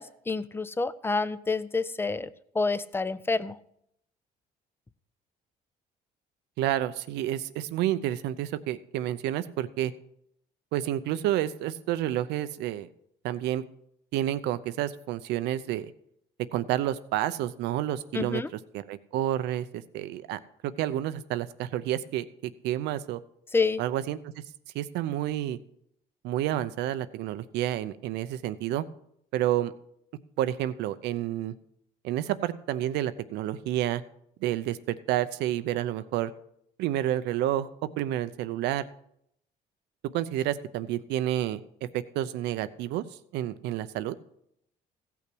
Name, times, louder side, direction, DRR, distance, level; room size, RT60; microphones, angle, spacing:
voice 1, 0.0-2.3 2.5-3.6 18.1-18.5 23.5-23.8, left 4 dB, 15° left, 16 dB, 0.5 m, -28 dB
voice 2, 6.6-9.9 10.7-12.9 13.2-13.6 14.1-15.9 16.5-18.4 18.7-23.2 23.8-24.4 24.7-25.6 26.2-28.8 29.3-29.7 30.4-31.5 32.0-34.0 34.4-36.3 36.8-37.7 38.0-38.9 40.1-41.6 41.9-43.0 43.3-44.2, right 13 dB, 85° right, 13 dB, 0.7 m, -29 dB
15.5 x 5.8 x 6.1 m, 0.73 s
cardioid pair, 110°, 17 cm